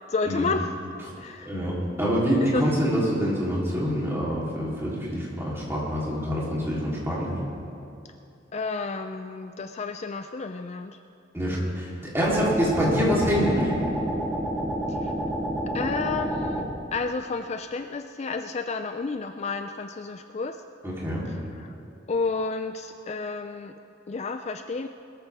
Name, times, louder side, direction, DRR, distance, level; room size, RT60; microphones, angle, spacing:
voice 1, 0.1-0.7 1.2-1.5 2.5-2.7 8.0-8.1 8.5-11.0 12.0-12.1 14.9-15.1 15.7-16.6 16.9-20.6 21.3-21.7 22.1-23.7 24.1-24.9, left 4 dB, 35° left, 8 dB, 0.4 m, -31 dB
voice 2, 1.5-7.3 11.3-13.8 20.8-21.3, equal, 15° right, -6 dB, 3.4 m, -26 dB
sound 1, 12.2-16.7, right 1 dB, 5° left, 2.1 m, -29 dB
21.0 x 13.5 x 3.5 m, 2.7 s
head